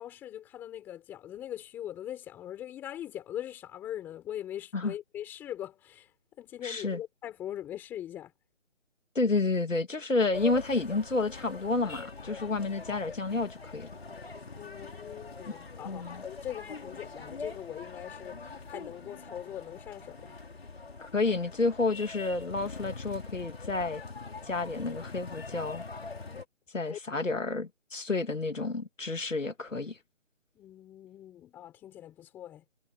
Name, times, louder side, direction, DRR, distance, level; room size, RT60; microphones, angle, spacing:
voice 1, 0.0-6.1 6.4-8.3 14.5-20.4 26.8-27.0 30.5-32.6, left 11 dB, 5° left, 4.8 m, -41 dB
voice 2, 6.6-7.0 9.1-13.9 15.8-16.2 21.1-24.0 24.4-25.8 26.7-30.0, left 3 dB, 85° left, 2.6 m, -30 dB
sound 1, 10.3-26.4, left 4 dB, 55° left, 6.0 m, -43 dB
figure-of-eight pair, 170°, 37 cm